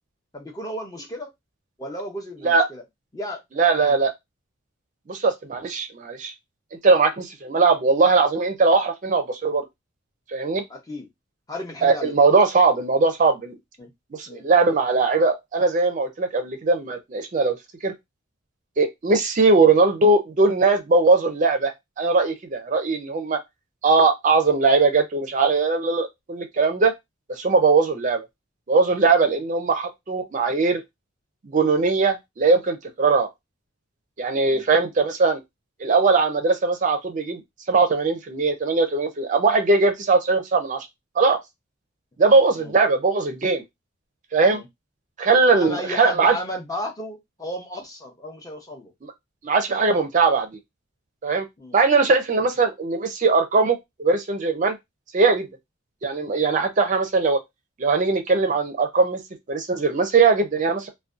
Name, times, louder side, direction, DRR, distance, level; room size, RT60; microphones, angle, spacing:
voice 1, 0.3-1.3 1.8-2.8 3.1-3.4 3.7-3.9 10.7-11.1 11.5-12.2 13.8-13.9 14.3-14.4 19.7-19.8 29.2-29.3 34.5-34.6 42.5-42.7 44.5-44.7 45.5-48.9 51.6-51.7, left 1 dB, 20° left, 0.6 m, -34 dB
voice 2, 3.6-4.1 5.1-6.3 6.8-9.6 10.3-10.6 11.8-13.5 14.1-17.6 17.8-17.9 18.8-23.4 23.8-26.9 27.3-28.3 28.7-30.8 31.4-33.3 34.2-35.4 35.8-37.4 37.7-40.9 41.2-41.4 42.2-43.6 44.3-44.6 45.2-46.3 49.0-49.1 49.4-50.5 51.2-51.5 51.7-54.8 55.1-55.5 56.0-57.4 57.8-59.2 59.5-60.9, right 4 dB, 40° right, 0.4 m, -20 dB
2.5 x 2.1 x 2.4 m
head